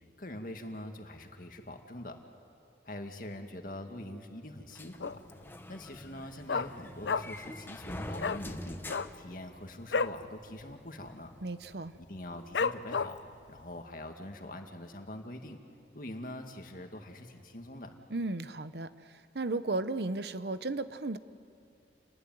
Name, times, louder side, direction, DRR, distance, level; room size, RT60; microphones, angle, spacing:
voice 1, 0.2-2.2 2.9-5.2 5.7-11.3 12.0-13.2 13.5-15.6 15.9-17.9, left 1 dB, 50° left, 4 dB, 2.1 m, -44 dB
sound 1, 4.7-10.0, left 1 dB, 10° left, 1.0 m, -45 dB
Dog, 5.0-5.4 5.7-5.8 6.1-7.5 7.8-7.9 8.2-8.4 8.8-10.2 10.6-10.7 11.0-11.4 11.9-12.0 12.5-13.3 13.8-13.9, left 5 dB, 90° left, 0.6 m, -32 dB
voice 2, 11.4-11.9 18.1-18.9 19.3-21.2, right 2 dB, 70° right, 13 dB, 0.9 m, -34 dB
29.0 x 19.5 x 9.4 m, 2.6 s
head